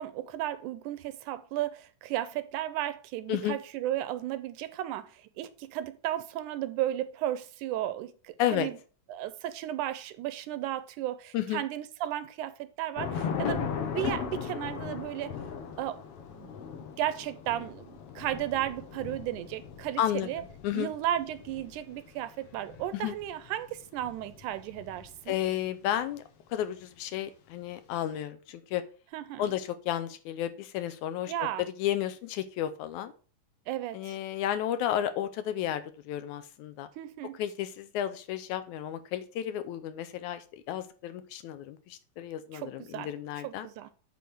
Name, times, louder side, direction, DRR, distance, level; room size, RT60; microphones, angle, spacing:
voice 1, 0.0-8.8 9.1-15.4 15.8-16.0 16.3-16.5 17.0-20.4 20.7-25.3 29.1-29.5 31.3-31.6 33.7-34.2 37.0-37.4 42.5-43.1 43.4-43.9, right 12 dB, 80° right, 2.0 m, -34 dB
Thunder / Rain, 13.0-25.5, left 7 dB, 65° left, 1.5 m, -38 dB
voice 2, 20.0-20.3 20.6-20.9 22.9-23.2 25.3-26.2 26.5-28.8 29.4-31.3 31.6-33.1 33.9-36.9 37.4-43.7, left 11 dB, 80° left, 1.9 m, -32 dB
8.4 x 3.9 x 6.1 m
omnidirectional pair, 3.7 m